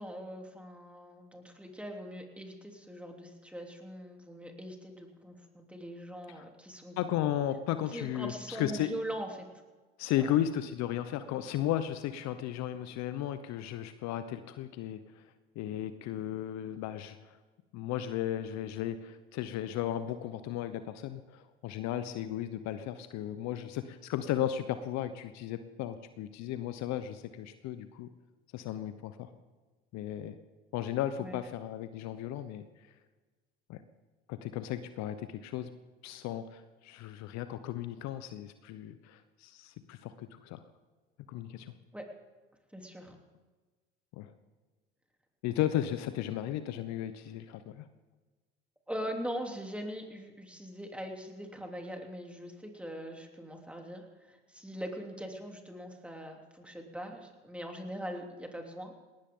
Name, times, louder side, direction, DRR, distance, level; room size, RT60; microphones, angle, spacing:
voice 1, 0.0-7.0 7.9-9.5 10.2-10.3 31.2-31.4 41.9-42.1 42.7-43.2 48.9-59.0, equal, 5° right, 2 dB, 3.4 m, -41 dB
voice 2, 7.0-8.9 10.0-15.2 15.5-17.4 17.7-28.1 28.5-29.3 29.9-30.4 30.7-32.6 33.7-33.8 34.3-35.7 36.0-40.6 41.3-41.7 44.1-44.3 45.4-47.9, left 11 dB, 55° left, 11 dB, 1.1 m, -35 dB
20.0 x 18.5 x 3.9 m, 1.3 s
hypercardioid pair, 75°, 32 cm